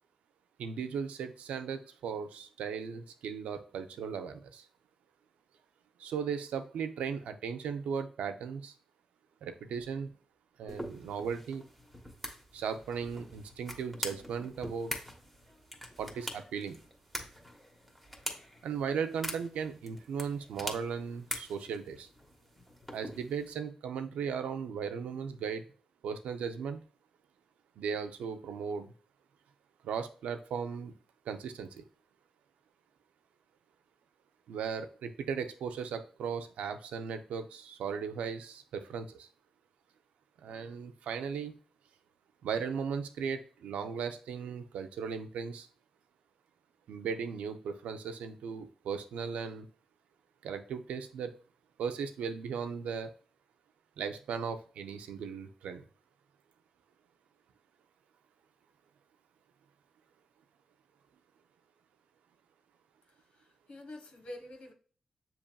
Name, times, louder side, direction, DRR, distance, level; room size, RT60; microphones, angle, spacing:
voice 1, 0.6-4.7 6.0-8.7 9.4-10.1 10.6-11.6 12.5-14.9 16.0-16.8 18.6-22.1 22.9-25.7 26.0-26.8 27.8-28.9 29.8-30.9 31.3-31.8 34.5-39.3 40.4-41.5 42.4-45.7 46.9-49.7 50.4-51.4 51.8-53.1 54.0-55.9, right 6 dB, 85° right, 0.4 m, -37 dB
sound 1, 10.7-23.5, equal, 5° left, 1.2 m, -44 dB
voice 2, 63.1-64.7, left 1 dB, 70° left, 1.1 m, -47 dB
7.0 x 2.9 x 2.2 m
supercardioid pair, 45°, 2 cm